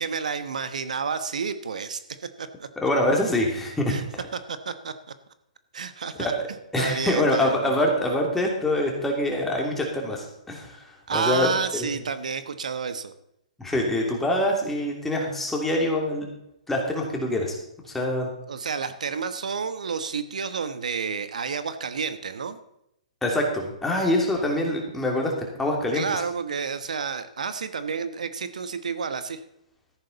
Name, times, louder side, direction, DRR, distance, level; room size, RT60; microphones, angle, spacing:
voice 1, 0.0-2.0 2.4-2.7 3.9-4.0 4.3-4.9 5.7-6.3 6.8-7.7 11.1-13.1 18.5-22.6 25.9-29.4, right 5 dB, 80° right, 11 dB, 1.1 m, -30 dB
voice 2, 2.8-4.0 6.2-6.5 6.7-11.9 13.6-16.2 16.7-17.6 17.8-18.3 23.2-25.3 25.6-26.0, left 1 dB, 5° left, 0 dB, 2.8 m, -25 dB
14.0 x 10.5 x 4.1 m, 0.81 s
hypercardioid pair, 145°, 4 cm